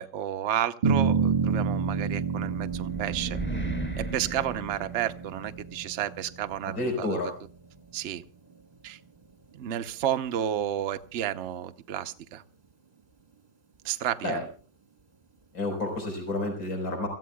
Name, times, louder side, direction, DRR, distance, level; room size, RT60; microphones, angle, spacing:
voice 1, 0.0-3.4 4.0-7.3 7.9-8.2 8.8-9.0 9.6-12.4 13.8-14.5, right 11 dB, 70° right, 9 dB, 0.6 m, -31 dB
sound 1, 0.8-7.4, right 5 dB, 20° right, 1.4 m, -29 dB
sound 2, 2.2-5.5, right 2 dB, 5° left, 1.3 m, -36 dB
voice 2, 6.6-7.3 14.2-14.4 15.5-17.1, left 2 dB, 45° left, 3 dB, 4.9 m, -30 dB
29.0 x 15.0 x 2.3 m, 0.37 s
omnidirectional pair, 2.3 m